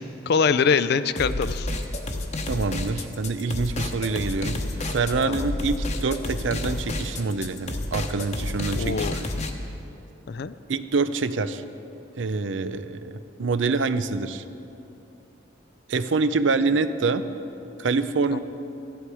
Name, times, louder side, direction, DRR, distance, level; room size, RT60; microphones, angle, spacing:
voice 1, 0.0-1.7 5.3-5.5 8.7-9.2 10.3-10.5 18.3-18.4, left 5 dB, 60° left, 12 dB, 0.4 m, -24 dB
sound 1, 1.2-9.5, left 2 dB, 40° left, 0.9 m, -30 dB
voice 2, 2.5-4.6 4.9-9.3 10.7-11.6 12.2-14.4 15.9-17.2 17.8-18.4, right 4 dB, 80° right, 12 dB, 0.5 m, -26 dB
14.0 x 11.0 x 4.9 m, 2.9 s
head